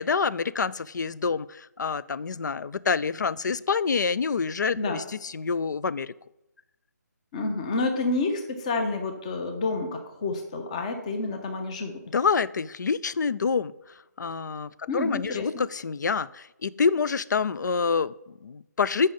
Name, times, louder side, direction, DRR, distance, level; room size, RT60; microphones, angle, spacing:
voice 1, 0.0-6.1 12.1-13.7 14.2-19.1, left 5 dB, 70° left, 17 dB, 0.4 m, -27 dB
voice 2, 7.3-12.0 14.9-15.6, left 3 dB, 20° left, 5 dB, 0.7 m, -29 dB
8.7 x 5.2 x 3.8 m, 0.89 s
hypercardioid pair, 165°, 10 cm